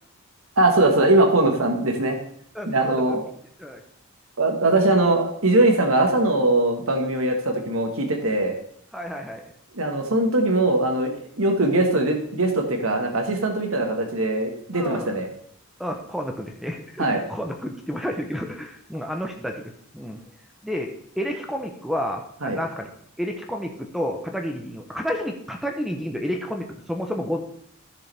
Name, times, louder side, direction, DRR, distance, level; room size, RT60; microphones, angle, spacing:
voice 1, 0.6-2.2 2.7-3.2 4.4-8.5 9.7-15.3 17.0-17.2 22.4-22.6, right 2 dB, 75° right, 4 dB, 1.6 m, -21 dB
voice 2, 2.5-3.2 3.6-3.8 8.9-9.4 14.7-15.2 15.8-20.2 20.6-22.9 23.2-27.4, equal, ahead, 4 dB, 0.8 m, -30 dB
13.5 x 6.9 x 3.5 m, 0.64 s
head